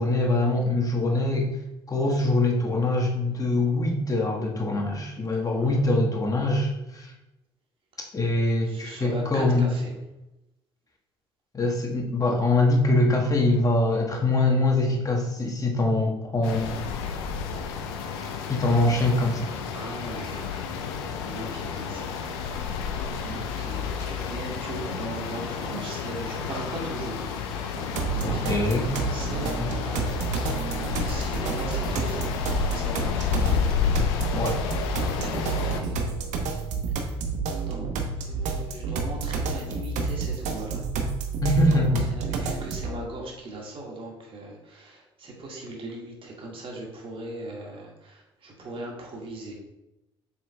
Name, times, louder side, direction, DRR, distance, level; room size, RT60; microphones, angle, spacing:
voice 1, 0.0-1.5 1.9-7.1 8.1-9.7 11.5-16.7 18.5-19.5 28.2-28.9 29.6-29.7 34.3-34.6 41.4-42.0, left 2 dB, 25° left, 0 dB, 1.5 m, -23 dB
voice 2, 5.4-5.8 8.7-9.9 18.7-18.8 19.7-20.5 21.3-22.5 23.2-27.8 28.0-34.6 34.9-36.1 37.0-37.2 37.6-40.8 41.7-49.5, right 1 dB, 40° right, -1 dB, 1.8 m, -39 dB
sound 1, 16.4-35.8, left 6 dB, 75° left, 0.6 m, -31 dB
sound 2, 28.0-43.0, right 4 dB, 60° right, 0.9 m, -30 dB
7.2 x 5.7 x 2.3 m, 0.93 s
figure-of-eight pair, 50°, 14 cm